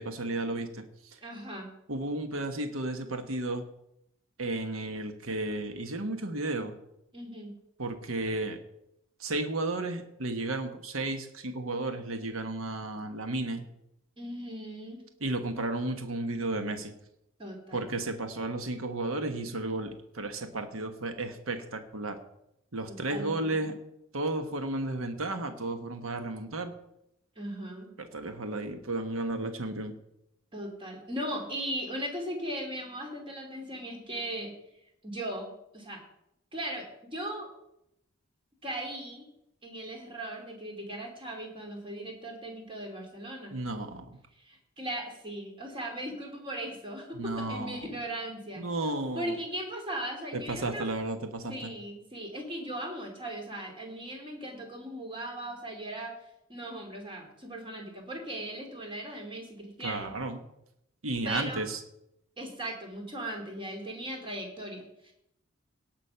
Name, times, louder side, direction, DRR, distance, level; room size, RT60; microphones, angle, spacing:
voice 1, 0.0-1.2 1.9-3.6 4.4-6.7 7.8-8.6 9.2-13.6 15.2-16.9 17.7-22.2 22.7-23.7 24.1-26.7 28.0-29.9 43.5-44.2 47.1-47.9 48.6-49.4 50.3-51.7 59.8-60.4 61.0-61.8, right 2 dB, 80° right, 7 dB, 1.2 m, -33 dB
voice 2, 1.2-1.7 7.1-7.5 14.2-15.0 17.4-17.8 22.9-23.5 27.4-27.9 30.5-34.5 35.0-36.0 36.5-37.5 38.6-39.3 39.6-43.6 44.3-48.6 49.1-50.8 51.5-56.1 56.5-60.1 61.2-61.6 62.4-65.1, right 1 dB, 25° right, 2 dB, 2.9 m, -38 dB
17.5 x 6.1 x 5.8 m, 0.81 s
head